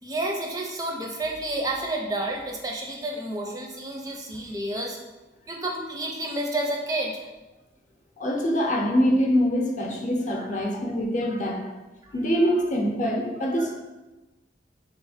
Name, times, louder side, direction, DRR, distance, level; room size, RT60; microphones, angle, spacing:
voice 1, 0.0-5.0 5.5-7.2 10.3-10.6 11.3-11.4 12.0-12.1 13.6-13.7, right 1 dB, 20° right, 1 dB, 0.4 m, -30 dB
voice 2, 8.2-11.6 12.1-13.7, equal, 40° left, 0 dB, 0.7 m, -24 dB
3.5 x 3.1 x 4.9 m, 1.1 s
head